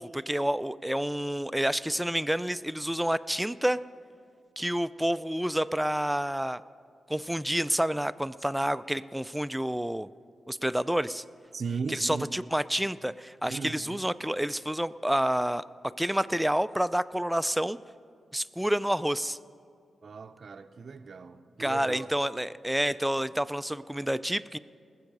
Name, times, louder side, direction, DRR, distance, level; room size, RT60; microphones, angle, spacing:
voice 1, 0.0-3.8 4.6-6.6 7.1-10.1 10.5-11.2 11.9-15.6 16.0-17.8 18.3-19.4 21.6-24.6, equal, 5° right, 15 dB, 0.4 m, -29 dB
voice 2, 11.5-12.3 13.5-14.0 20.0-22.1, right 5 dB, 60° right, 7 dB, 0.5 m, -37 dB
19.5 x 7.6 x 5.4 m, 2.2 s
cardioid pair, 60°, 0 cm